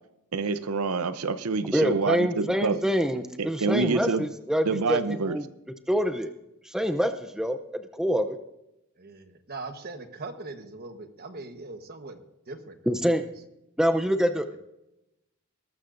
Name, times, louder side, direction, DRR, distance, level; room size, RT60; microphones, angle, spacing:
voice 1, 0.3-2.8 3.6-4.2 4.6-5.4, right 4 dB, 90° right, 12 dB, 0.7 m, -27 dB
voice 2, 1.7-5.0 5.3-5.5 5.9-6.3 6.6-8.4 12.9-13.2 13.8-14.6, equal, 5° right, 8 dB, 0.6 m, -26 dB
voice 3, 9.0-12.2 12.5-12.9, right 3 dB, 45° right, 7 dB, 1.2 m, -40 dB
20.0 x 12.5 x 2.6 m, 0.87 s
head